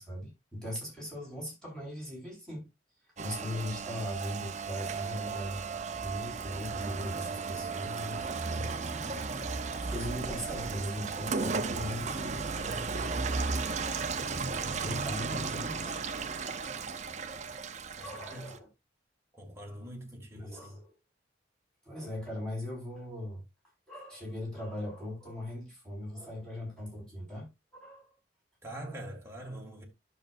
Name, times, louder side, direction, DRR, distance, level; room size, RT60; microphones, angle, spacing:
voice 1, 0.0-2.7 3.2-5.7 6.0-9.0 9.8-13.4 14.8-16.5 18.0-18.7 20.3-20.9 21.9-23.4 23.9-28.0 28.9-29.1, left 1 dB, 5° left, 5.4 m, -40 dB
Rain, 3.2-18.6, right 4 dB, 35° right, 0.7 m, -35 dB
voice 2, 18.0-18.5 19.3-20.8 28.6-29.8, right 1 dB, 15° right, 2.2 m, -44 dB
11.5 x 6.6 x 2.6 m
head